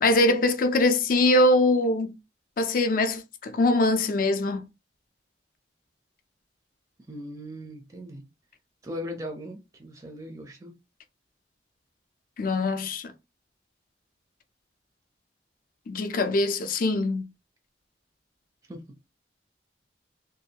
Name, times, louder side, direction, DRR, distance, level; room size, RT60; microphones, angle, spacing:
voice 1, 0.0-2.1 2.6-4.7 12.4-13.1 15.9-17.3, left 2 dB, 50° left, 0.4 m, -23 dB
voice 2, 7.1-8.2 8.8-10.7 18.7-18.8, equal, 20° right, 0.4 m, -38 dB
2.6 x 2.3 x 2.8 m
head